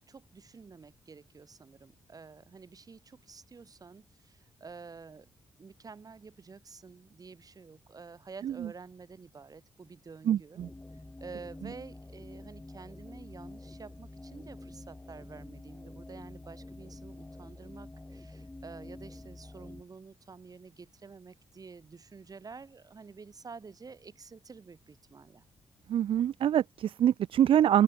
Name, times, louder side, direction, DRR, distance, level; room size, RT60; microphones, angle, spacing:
voice 1, 0.0-5.3 5.6-10.6 11.2-25.4, right 5 dB, 40° right, 5.7 m, -49 dB
voice 2, 10.3-10.7 25.9-27.8, right 10 dB, 65° right, 0.4 m, -25 dB
sound 1, 10.6-19.8, left 2 dB, 15° left, 3.9 m, -47 dB
open air
cardioid pair, 90°, 10 cm